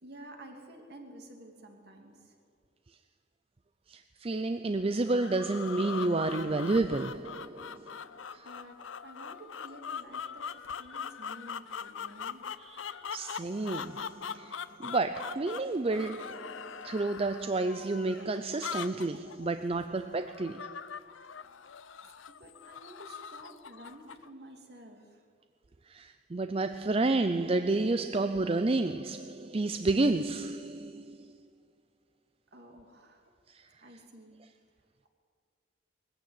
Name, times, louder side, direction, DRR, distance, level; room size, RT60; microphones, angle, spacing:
voice 1, 0.0-2.4 8.4-12.5 22.0-25.2 32.5-33.2 33.8-34.4, right 1 dB, 55° right, 2.9 m, -51 dB
voice 2, 3.9-8.0 8.3-8.5 12.6-20.7 25.9-31.3 33.5-33.7, right 2 dB, 30° right, 0.5 m, -31 dB
sound 1, 5.1-24.3, left 7 dB, 75° left, 0.7 m, -42 dB
21.0 x 15.0 x 9.2 m
head